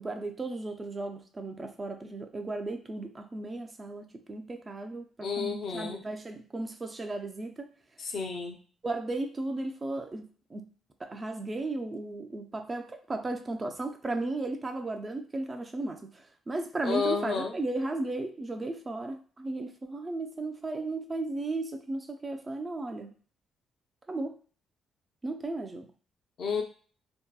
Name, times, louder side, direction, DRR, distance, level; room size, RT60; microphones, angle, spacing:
voice 1, 0.0-7.7 8.8-10.7 11.0-23.1 24.1-24.4 25.2-25.9, right 2 dB, 25° right, 5 dB, 0.4 m, -35 dB
voice 2, 5.2-6.0 8.0-8.6 16.8-17.5 26.4-26.6, left 5 dB, 60° left, 2 dB, 0.5 m, -31 dB
2.7 x 2.2 x 2.2 m, 0.41 s
cardioid pair, 90°, 0 cm